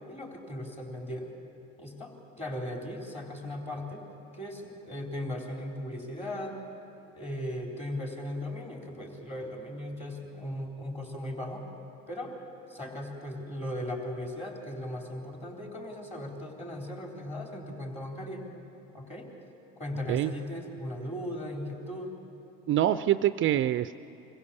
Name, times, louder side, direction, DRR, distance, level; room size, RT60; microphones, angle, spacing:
voice 1, 0.1-1.4 1.8-4.0 4.3-6.6 7.1-11.6 12.1-12.4 12.7-18.5 18.9-19.3 19.8-22.2, left 1 dB, 20° left, 0 dB, 3.9 m, -37 dB
voice 2, 22.7-23.9, right 12 dB, 45° right, 13 dB, 0.4 m, -25 dB
24.0 x 16.0 x 7.0 m, 2.9 s
supercardioid pair, 90°, 29 cm